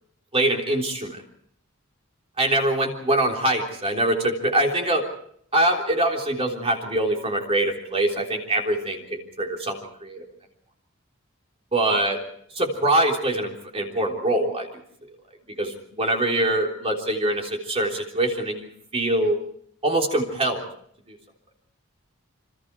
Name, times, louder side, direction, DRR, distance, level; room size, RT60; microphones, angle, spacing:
voice 1, 0.3-1.2 2.4-5.0 5.5-10.2 11.7-12.2 12.6-14.7 15.6-19.4 19.8-20.6 21.1-21.2, right 1 dB, 25° right, 1 dB, 3.5 m, -24 dB
28.5 x 25.0 x 4.7 m, 0.67 s
head